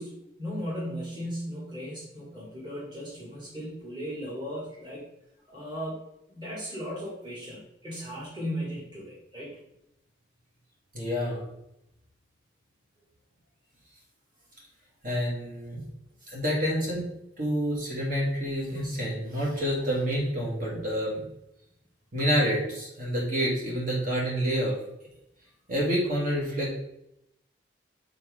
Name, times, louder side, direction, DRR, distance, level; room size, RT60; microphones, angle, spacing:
voice 1, 0.0-5.0 5.5-6.0 6.3-9.5, equal, 25° right, -7 dB, 2.1 m, -36 dB
voice 2, 10.9-11.4 15.0-15.8 16.3-17.1 17.4-21.2 22.1-24.7 25.7-26.8, equal, 45° right, -5 dB, 2.3 m, -28 dB
7.5 x 4.0 x 3.7 m, 0.81 s
head